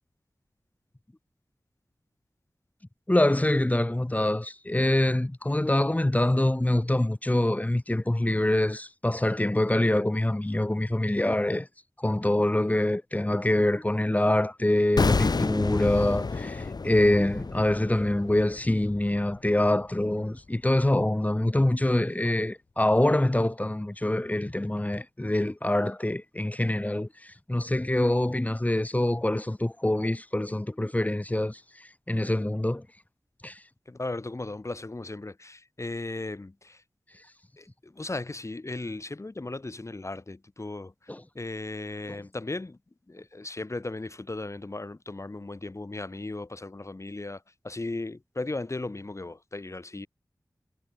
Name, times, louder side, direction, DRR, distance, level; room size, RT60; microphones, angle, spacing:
voice 1, 3.1-11.7 12.0-32.8 33.4-33.6 41.1-41.2, left 1 dB, 20° left, 3.7 m, -25 dB
sound 1, 15.0-20.0 20.2-20.4, left 4 dB, 70° left, 2.0 m, -30 dB
voice 2, 33.9-36.8 37.6-42.8 43.1-50.1, left 2 dB, 45° left, 7.6 m, -36 dB
wide cardioid pair, 75°, 7 cm